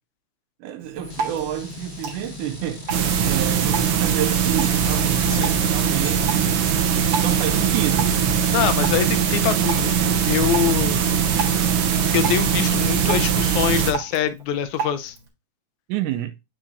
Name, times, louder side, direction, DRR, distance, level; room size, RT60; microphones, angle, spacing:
voice 1, 0.6-2.9 3.2-6.6 7.2-8.5 9.1-9.2 15.9-16.4, right 12 dB, 85° right, 2.1 m, -29 dB
Drip, 0.8-15.3, right 6 dB, 50° right, 2.0 m, -35 dB
sound 1, 0.9-13.3, left 3 dB, 20° left, 1.5 m, -38 dB
sound 2, 2.9-13.9, right 8 dB, 70° right, 1.4 m, -21 dB
voice 2, 5.3-5.6 8.5-11.0 12.1-15.2, left 10 dB, 80° left, 2.0 m, -24 dB
7.4 x 5.6 x 2.5 m
omnidirectional pair, 3.5 m